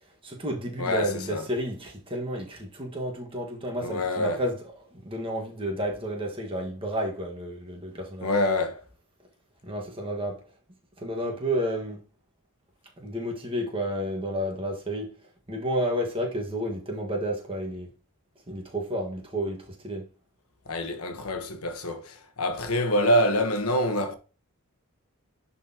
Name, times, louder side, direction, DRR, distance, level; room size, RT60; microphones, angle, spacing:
voice 1, 0.2-4.6 4.9-8.3 9.6-10.4 11.0-12.0 13.0-15.1 15.5-17.9 18.5-20.0, equal, 25° right, 1.6 m, -31 dB
voice 2, 0.8-1.5 3.8-4.4 8.2-8.8 20.7-24.2, left 1 dB, 80° left, 1.2 m, -26 dB
10.5 x 4.2 x 2.9 m
head